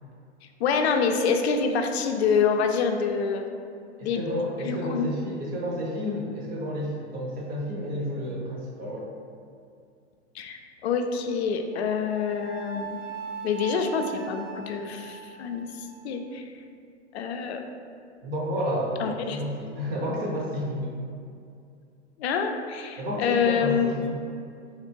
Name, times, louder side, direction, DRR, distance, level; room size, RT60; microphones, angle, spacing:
voice 1, 0.6-3.5 4.0-4.2 4.6-5.0 10.3-13.0 13.4-16.4 17.1-17.6 19.0-19.4 22.2-23.9, left 6 dB, 65° left, 5 dB, 0.5 m, -26 dB
voice 2, 4.0-9.1 18.2-21.0 23.0-24.2, equal, 25° right, -3 dB, 0.8 m, -31 dB
Wind instrument woodwind instrument, 11.7-16.1, right 7 dB, 85° right, 0.5 m, -40 dB
3.2 x 2.5 x 4.4 m, 2.4 s
hypercardioid pair, 120°, 35 cm